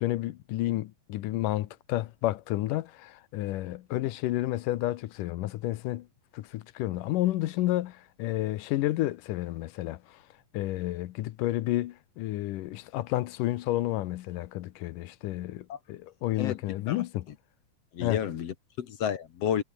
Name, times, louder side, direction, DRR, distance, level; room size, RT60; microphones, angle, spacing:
voice 1, 0.0-6.1 6.3-10.2 10.5-17.3 18.0-18.2, left 15 dB, 85° left, 2.5 m, -31 dB
voice 2, 17.9-19.6, left 9 dB, 60° left, 2.1 m, -31 dB
omnidirectional pair, 3.7 m